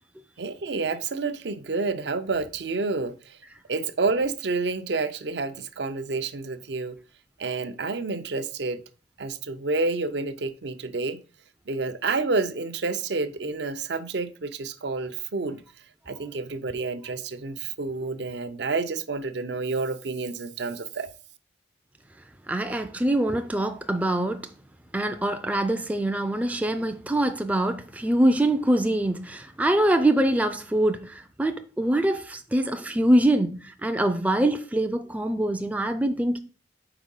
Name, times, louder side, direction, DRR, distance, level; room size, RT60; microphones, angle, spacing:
voice 1, 0.4-3.4 3.7-7.0 7.4-8.8 9.2-11.2 11.7-15.6 16.1-21.1, right 3 dB, 65° right, 0.6 m, -29 dB
voice 2, 22.5-24.5 24.9-36.4, right 1 dB, 10° right, 0.4 m, -24 dB
4.9 x 4.4 x 5.4 m
head